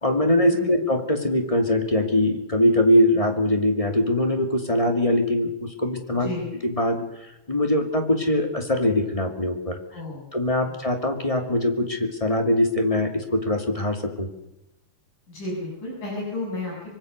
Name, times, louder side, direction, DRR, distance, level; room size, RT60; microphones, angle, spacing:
voice 1, 0.0-6.3 6.6-9.8 10.3-14.3, left 1 dB, 10° left, 4 dB, 2.2 m, -22 dB
voice 2, 6.2-6.5 9.9-10.4 10.6-10.8 15.3-16.9, left 2 dB, 85° left, -3 dB, 8.8 m, -33 dB
24.5 x 22.5 x 6.7 m, 0.91 s
omnidirectional pair, 3.6 m